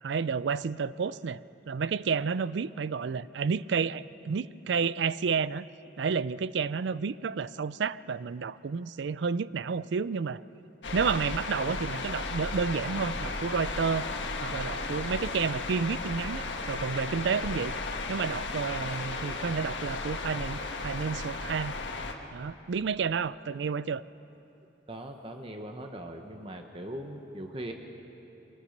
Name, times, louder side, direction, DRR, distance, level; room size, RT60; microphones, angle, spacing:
voice 1, 0.0-1.4 1.7-5.6 6.0-10.4 10.9-14.1 14.4-17.8 18.1-21.7 22.3-24.1, right 5 dB, 70° right, 17 dB, 0.4 m, -30 dB
sound 1, 10.8-22.1, left 3 dB, 75° left, 1.6 m, -35 dB
voice 2, 24.9-27.7, right 1 dB, 30° right, 4 dB, 1.2 m, -40 dB
24.5 x 18.5 x 6.6 m, 3.0 s
head